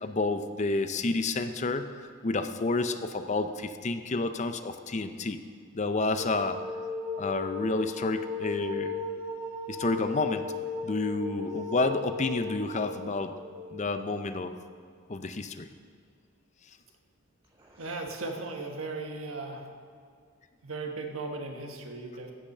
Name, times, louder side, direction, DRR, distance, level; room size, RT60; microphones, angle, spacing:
voice 1, 0.0-5.4 5.7-6.6 7.2-9.0 9.7-10.5 10.8-13.3 13.7-14.5 15.1-15.7, left 3 dB, 35° left, 9 dB, 0.5 m, -30 dB
sound 1, 6.2-14.3 17.6-18.2, left 4 dB, 25° right, 3.0 m, -37 dB
voice 2, 17.8-19.7 20.6-22.3, right 3 dB, 90° right, 3 dB, 1.4 m, -37 dB
15.0 x 5.7 x 6.6 m, 2.2 s
head